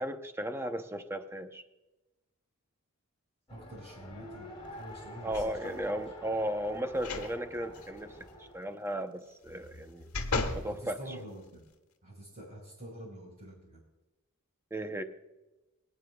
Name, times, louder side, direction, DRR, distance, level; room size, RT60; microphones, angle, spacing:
voice 1, 0.0-1.6 5.2-8.2 8.5-10.1 10.5-11.0 14.7-15.0, right 1 dB, 10° right, 7 dB, 0.8 m, -35 dB
Race car auto racing, 3.5-8.7, left 1 dB, 25° left, 2.3 m, -48 dB
voice 2, 3.5-6.0 10.6-11.6 12.0-13.8, right 1 dB, 45° right, -6 dB, 4.4 m, -47 dB
sound 1, 5.3-5.9 7.0-7.3 7.7-7.9 9.5-10.7 11.3-11.4, left 3 dB, 70° left, 1.4 m, -35 dB
25.0 x 9.3 x 2.3 m, 1.0 s
head